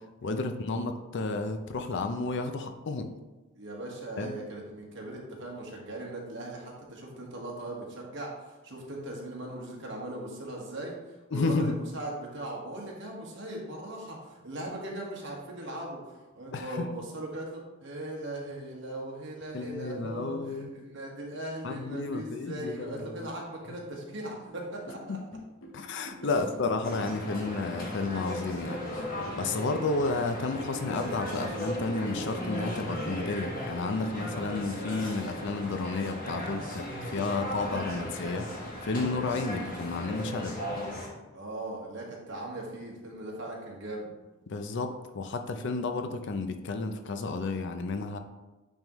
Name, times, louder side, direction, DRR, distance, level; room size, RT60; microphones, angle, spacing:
voice 1, 0.2-3.1 4.2-4.4 11.3-11.8 16.5-16.9 19.5-20.7 21.6-23.3 25.1-25.2 25.7-28.8 29.3-38.5 38.8-40.6 44.5-48.2, left 3 dB, 60° left, 7 dB, 0.5 m, -32 dB
voice 2, 3.5-25.2 26.2-26.3 41.3-44.1, right 1 dB, 60° right, -2 dB, 1.5 m, -39 dB
sound 1, 24.5-32.1, left 1 dB, 75° left, 0.9 m, -48 dB
sound 2, 26.8-41.1, left 1 dB, 45° left, 1.5 m, -37 dB
9.0 x 3.6 x 3.0 m, 1.1 s
head